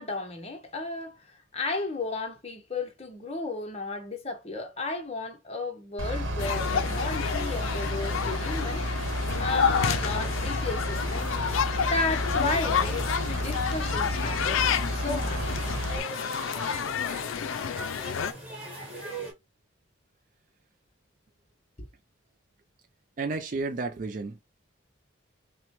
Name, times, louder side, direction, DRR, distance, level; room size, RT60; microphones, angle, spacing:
voice 1, 0.0-8.8 9.4-11.3 11.7-14.6 14.9-15.6 21.8-21.9, left 3 dB, 30° left, 0.9 m, -33 dB
Bus / Idling, 6.0-16.0, equal, 75° right, 1.0 m, -31 dB
sound 1, 6.4-18.3, left 7 dB, 90° left, 0.4 m, -30 dB
sound 2, 12.3-19.3, right 1 dB, 5° right, 1.5 m, -41 dB
voice 2, 23.2-24.4, right 3 dB, 40° right, 0.4 m, -32 dB
5.8 x 2.2 x 3.0 m
head